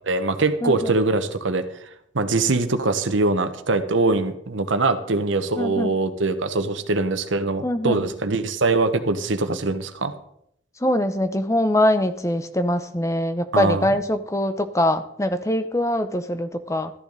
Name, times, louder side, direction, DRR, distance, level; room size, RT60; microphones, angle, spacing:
voice 1, 0.0-1.7 2.1-10.1 13.5-13.9, right 3 dB, 85° right, 9 dB, 1.1 m, -22 dB
voice 2, 0.6-0.9 5.6-5.9 7.6-8.1 10.8-16.9, left 1 dB, 15° left, 10 dB, 0.7 m, -23 dB
13.5 x 10.5 x 4.0 m, 0.72 s
head